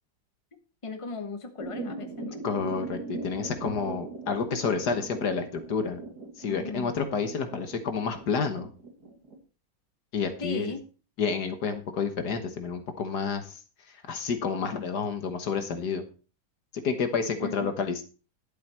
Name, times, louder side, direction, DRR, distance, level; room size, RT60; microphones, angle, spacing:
voice 1, 0.8-2.7 6.5-6.9 10.4-10.8 17.4-17.7, left 4 dB, 20° left, 7 dB, 1.1 m, -37 dB
sound 1, 1.6-9.4, right 3 dB, 50° right, 2.7 m, -39 dB
voice 2, 2.4-6.0 6.4-8.7 10.1-10.7 11.2-13.6 13.9-16.0 16.8-18.0, left 5 dB, 55° left, 8 dB, 1.8 m, -29 dB
11.5 x 8.3 x 4.4 m, 0.35 s
omnidirectional pair, 2.1 m